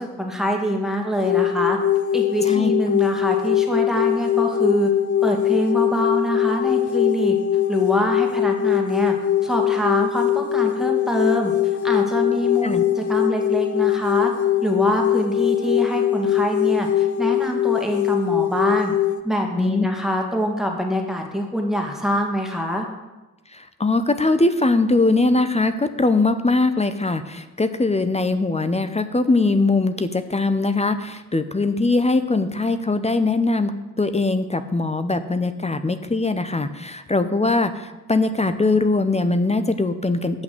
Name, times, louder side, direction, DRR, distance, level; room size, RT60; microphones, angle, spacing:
voice 1, 0.0-1.8 2.1-4.9 5.2-7.4 7.7-9.2 9.4-11.5 11.8-14.3 14.6-18.9 19.2-22.9, equal, ahead, 1 dB, 2.1 m, -24 dB
sound 1, 1.2-19.2, left 11 dB, 45° left, 1.0 m, -21 dB
voice 2, 23.5-33.7 34.0-40.4, left 3 dB, 15° left, 10 dB, 0.8 m, -21 dB
8.8 x 5.9 x 7.8 m, 1.1 s
hypercardioid pair, 45°, 41 cm